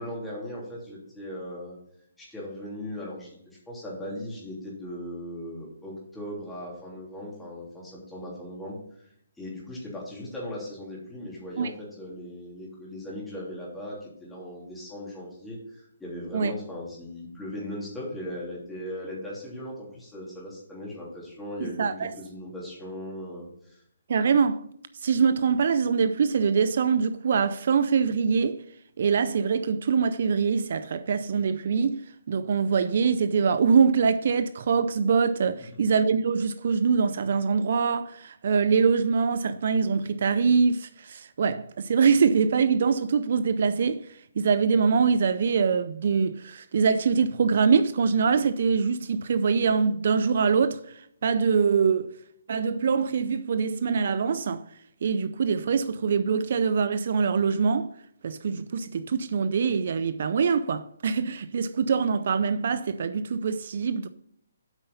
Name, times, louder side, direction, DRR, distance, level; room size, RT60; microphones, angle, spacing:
voice 1, 0.0-1.8 2.2-3.3 3.7-8.8 9.4-23.8 35.6-35.8, left 1 dB, 5° left, 3.1 m, -38 dB
voice 2, 21.6-22.1 24.1-24.7 25.0-28.6 29.0-52.1 52.5-54.7 55.0-57.9 58.2-64.1, right 5 dB, 55° right, 0.4 m, -24 dB
8.1 x 5.4 x 5.5 m
hypercardioid pair, 150°, 0 cm